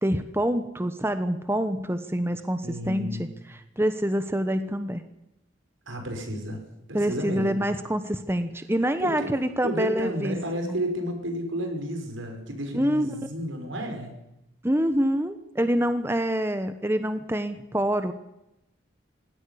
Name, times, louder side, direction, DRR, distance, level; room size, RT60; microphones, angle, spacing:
voice 1, 0.0-5.0 6.9-10.4 10.6-10.8 12.7-13.1 14.6-18.1, right 1 dB, 10° right, 9 dB, 1.0 m, -26 dB
voice 2, 2.6-3.3 5.9-6.6 6.9-7.6 9.0-9.3 9.6-14.1, equal, 85° right, 4 dB, 5.7 m, -32 dB
18.0 x 17.0 x 10.0 m, 0.90 s
head